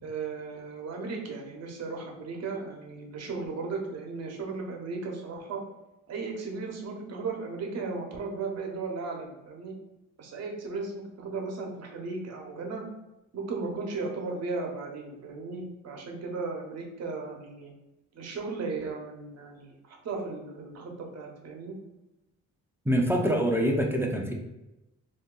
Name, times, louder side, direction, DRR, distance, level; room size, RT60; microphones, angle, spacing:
voice 1, 0.0-5.6 6.1-9.7 10.2-12.8 13.3-17.7 18.1-21.8, right 4 dB, 55° right, 1 dB, 0.9 m, -36 dB
voice 2, 22.8-24.3, equal, 10° right, 0 dB, 0.5 m, -25 dB
2.7 x 2.2 x 3.7 m, 0.96 s
cardioid pair, 90°, 30 cm